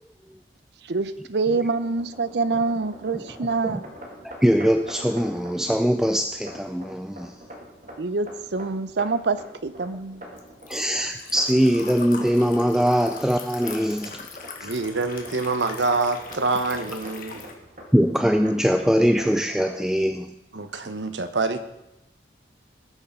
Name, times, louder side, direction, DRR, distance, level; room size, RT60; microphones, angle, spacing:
voice 1, 0.8-3.8 8.0-10.2, right 3 dB, 70° right, 14 dB, 0.6 m, -26 dB
sound 1, 1.4-19.8, equal, 45° right, 1.9 m, -45 dB
voice 2, 4.2-7.4 10.7-14.2 14.6-14.7 17.9-20.3, equal, 5° right, 7 dB, 0.4 m, -22 dB
Liquid, 9.3-17.5, left 5 dB, 50° left, 1.5 m, -41 dB
voice 3, 14.6-17.4 20.5-21.6, right 3 dB, 85° right, 9 dB, 1.1 m, -26 dB
19.0 x 6.7 x 5.4 m, 0.90 s
head